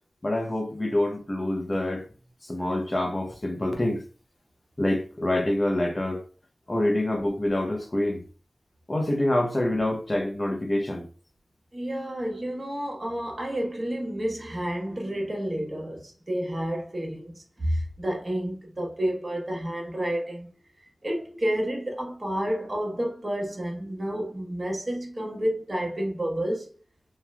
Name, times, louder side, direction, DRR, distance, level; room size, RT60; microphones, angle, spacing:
voice 1, 0.2-2.0 2.4-4.0 4.8-6.2 6.7-8.2 8.9-11.1, left 1 dB, 35° left, 0.8 m, -26 dB
voice 2, 11.7-20.5 21.0-26.7, right 1 dB, 40° right, 1.2 m, -30 dB
3.1 x 3.0 x 2.3 m
wide cardioid pair, 55°, 0 cm